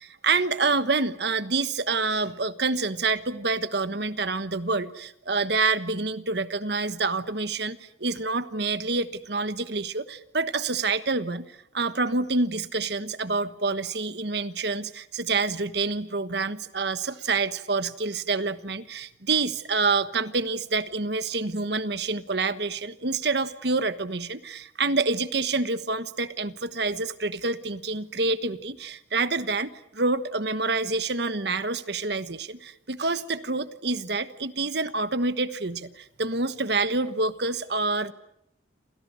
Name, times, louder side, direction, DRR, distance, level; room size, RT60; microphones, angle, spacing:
voice 1, 0.0-38.1, right 3 dB, 60° right, 13 dB, 1.3 m, -27 dB
28.5 x 28.0 x 6.4 m, 0.75 s
head